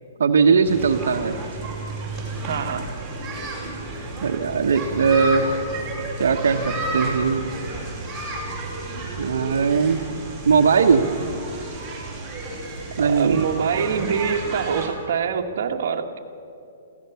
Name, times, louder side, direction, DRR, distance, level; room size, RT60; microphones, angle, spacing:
voice 1, 0.2-1.4 4.2-5.5 6.2-7.4 9.2-10.0 10.4-11.0 13.0-13.5, right 5 dB, 85° right, 3 dB, 1.2 m, -19 dB
sound 1, 0.6-14.9, right 2 dB, 10° right, 5.2 m, -32 dB
voice 2, 2.4-2.9 13.0-16.2, right 6 dB, 60° right, 3 dB, 1.5 m, -25 dB
23.0 x 16.0 x 7.0 m, 2.6 s
hypercardioid pair, 160°, 0 cm